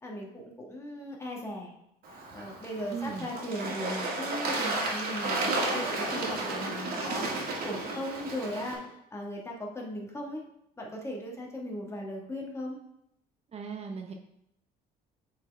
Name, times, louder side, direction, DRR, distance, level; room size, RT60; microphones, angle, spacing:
voice 1, 0.0-1.7 2.3-7.3 7.6-10.4 10.8-12.8, equal, 15° left, -2 dB, 1.6 m, -38 dB
Bird / Water, 2.0-8.7, right 2 dB, 65° right, 1.9 m, -33 dB
voice 2, 2.9-3.3 13.5-14.1, right 6 dB, 40° right, 3 dB, 0.7 m, -37 dB
8.2 x 4.3 x 3.5 m, 0.78 s
cardioid pair, 110°, 17 cm